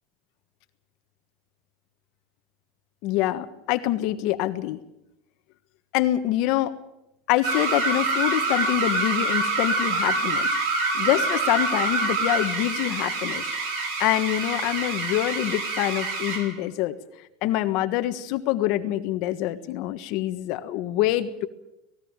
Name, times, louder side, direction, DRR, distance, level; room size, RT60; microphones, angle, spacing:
voice 1, 3.0-4.8 5.9-6.7 7.3-10.5 10.9-13.4 14.0-16.9 17.4-21.5, left 14 dB, 55° left, 9 dB, 1.4 m, -25 dB
sound 1, 7.4-16.5, right 3 dB, 65° right, 6.6 m, -26 dB
19.0 x 17.5 x 9.0 m, 0.87 s
supercardioid pair, 150°, 0 cm